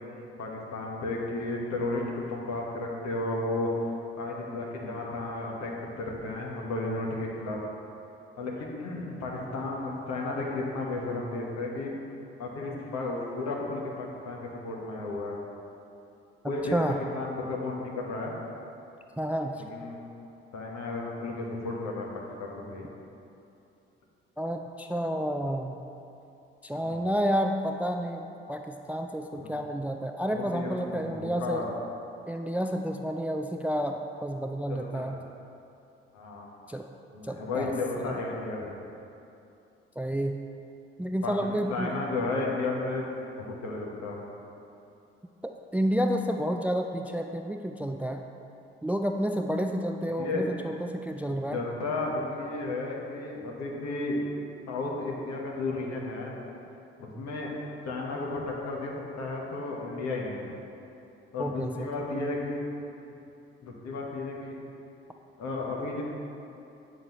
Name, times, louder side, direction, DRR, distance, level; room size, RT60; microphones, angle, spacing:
voice 1, 0.0-3.7 4.2-7.6 8.4-11.9 12.4-15.4 16.5-16.8 17.1-18.3 19.5-20.0 20.5-22.9 26.7-27.0 29.3-29.6 30.3-31.7 34.7-35.2 36.1-36.5 37.1-38.7 41.2-41.3 41.7-43.1 43.4-44.2 50.2-50.4 51.3-54.2 54.7-56.3 57.0-57.5 57.8-60.5 61.3-62.6 63.6-64.6 65.4-66.0, left 2 dB, 60° left, -2 dB, 1.3 m, -33 dB
voice 2, 19.2-19.6 24.4-25.8 26.6-28.2 28.5-31.6 32.3-35.2 36.7-36.8 37.2-37.7 38.1-38.2 40.0-40.4 41.0-42.0 45.7-48.2 48.8-51.6 57.2-57.3 61.4-61.9, equal, 5° right, 5 dB, 0.3 m, -30 dB
9.1 x 6.0 x 3.1 m, 2.7 s
figure-of-eight pair, 40°, 30 cm